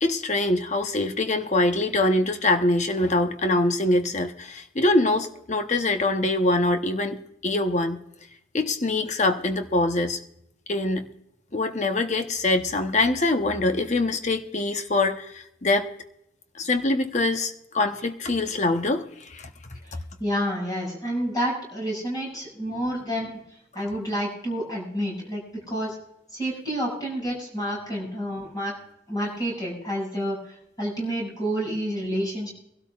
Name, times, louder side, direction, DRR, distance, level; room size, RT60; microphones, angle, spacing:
voice 1, 0.0-8.0 8.5-10.2 10.7-11.1 11.5-15.9 16.6-19.5, left 2 dB, 40° left, 6 dB, 0.9 m, -24 dB
voice 2, 19.8-23.4 23.7-25.4 25.7-26.0 26.3-28.7 29.1-32.5, equal, 20° left, -3 dB, 6.6 m, -29 dB
23.5 x 12.5 x 2.4 m, 0.79 s
head